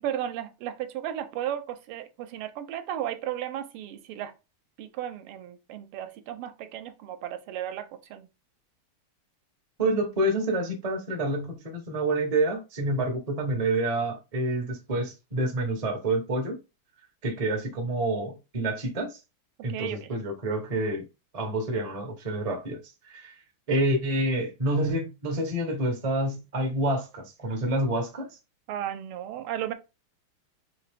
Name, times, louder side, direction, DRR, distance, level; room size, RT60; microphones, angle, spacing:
voice 1, 0.0-4.3 4.8-8.3 19.7-20.1 28.7-29.7, right 11 dB, 85° right, 1.5 m, -34 dB
voice 2, 9.8-16.6 17.2-19.2 19.6-21.0 21.3-23.3 23.7-28.3, right 1 dB, 50° right, 0.4 m, -28 dB
4.2 x 2.9 x 3.3 m
omnidirectional pair, 2.4 m